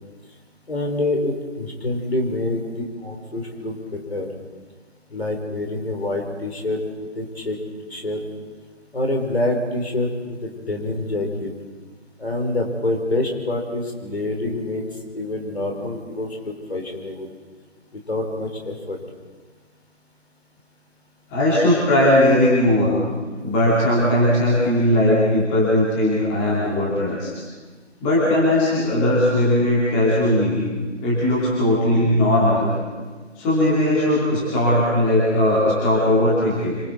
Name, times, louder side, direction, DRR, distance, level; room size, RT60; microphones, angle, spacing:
voice 1, 0.7-4.3 5.1-6.8 7.1-7.6 7.9-8.2 8.9-11.5 12.2-14.8 15.1-17.3 17.9-19.0, left 2 dB, 55° left, 2 dB, 4.5 m, -26 dB
voice 2, 21.3-22.9 23.4-27.3 28.0-30.6 31.0-32.7 33.4-36.8, left 1 dB, 10° left, -7 dB, 2.6 m, -18 dB
26.5 x 22.0 x 4.6 m, 1.4 s
figure-of-eight pair, 160°, 37 cm